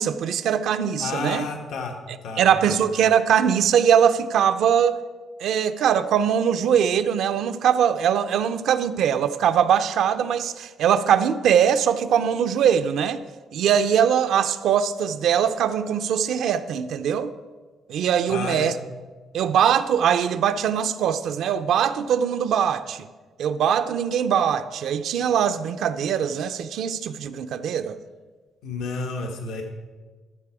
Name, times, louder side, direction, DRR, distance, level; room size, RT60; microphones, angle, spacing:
voice 1, 0.0-1.4 2.4-5.0 5.4-13.2 13.5-17.3 17.9-18.7 19.3-23.1 23.4-28.0, right 8 dB, 75° right, 0.5 m, -21 dB
voice 2, 1.0-1.9 2.2-2.8 18.3-18.7 28.6-29.6, left 4 dB, 85° left, 1.2 m, -31 dB
13.5 x 6.8 x 4.8 m
cardioid pair, 90°, 0 cm